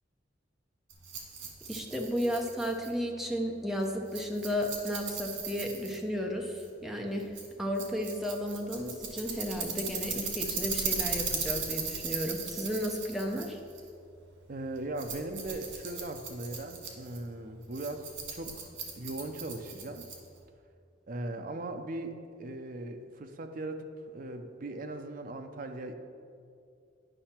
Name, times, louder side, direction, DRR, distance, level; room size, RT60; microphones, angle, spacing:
Rattle, 0.9-20.5, right 5 dB, 90° right, 1.5 m, -38 dB
voice 1, 1.7-13.6, equal, ahead, 1 dB, 0.7 m, -33 dB
voice 2, 14.5-20.1 21.1-25.9, right 2 dB, 45° right, 6 dB, 0.6 m, -39 dB
9.9 x 5.6 x 4.4 m, 2.4 s
head